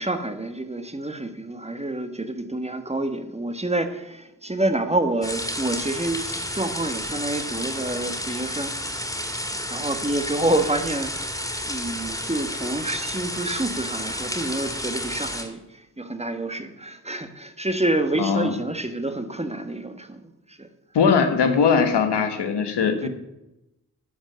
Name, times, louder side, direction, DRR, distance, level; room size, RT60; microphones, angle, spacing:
voice 1, 0.0-9.0 9.7-20.7 23.0-23.1, right 2 dB, 15° right, 8 dB, 1.3 m, -28 dB
sound 1, 5.2-15.4, left 1 dB, 10° left, 2.7 m, -31 dB
voice 2, 18.2-18.5 20.9-23.1, left 6 dB, 90° left, 6 dB, 1.4 m, -20 dB
11.0 x 5.3 x 7.4 m, 0.93 s
cardioid pair, 50°, 40 cm